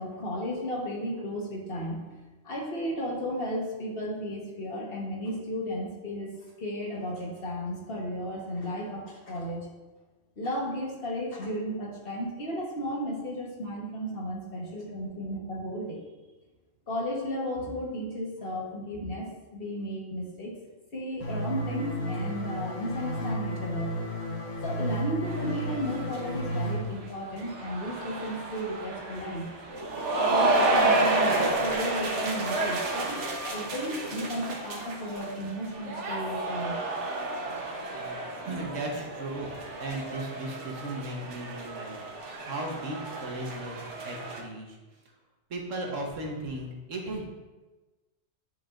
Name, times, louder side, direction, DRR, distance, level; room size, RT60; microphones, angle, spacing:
voice 1, 0.0-2.1 2.4-6.3 6.6-9.7 10.4-16.0 16.9-20.5 20.9-24.0 24.6-29.5 30.2-36.8, equal, 50° left, -2 dB, 1.5 m, -34 dB
sound 1, 21.2-26.8, equal, 85° left, 1.5 m, -33 dB
sound 2, 25.3-44.4, right 2 dB, 70° right, 1.3 m, -31 dB
voice 2, 37.9-39.5 39.8-44.8 45.5-47.3, right 1 dB, 90° right, 0 dB, 1.5 m, -36 dB
9.2 x 5.2 x 2.5 m, 1.2 s
omnidirectional pair, 1.3 m